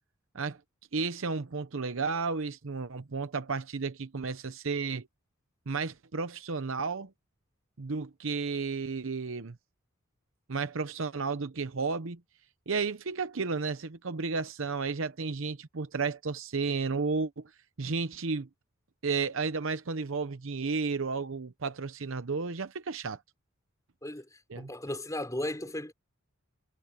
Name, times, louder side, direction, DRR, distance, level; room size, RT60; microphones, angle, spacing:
voice 1, 0.9-5.1 5.7-7.1 7.8-9.6 10.5-12.2 12.7-17.4 17.8-18.5 19.0-23.2 24.5-24.7, right 4 dB, 65° right, 0.8 m, -32 dB
voice 2, 24.6-25.9, left 1 dB, 15° left, 5.7 m, -35 dB
head